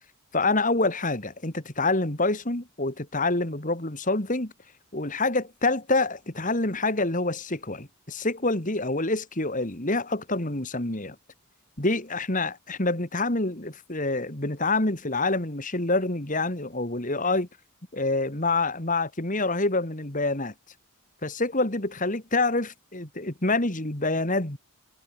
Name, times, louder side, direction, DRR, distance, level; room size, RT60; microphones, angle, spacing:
voice 1, 0.3-4.5 4.9-11.2 11.8-17.5 17.9-20.5 21.2-24.6, left 2 dB, 35° left, 2.7 m, -27 dB
head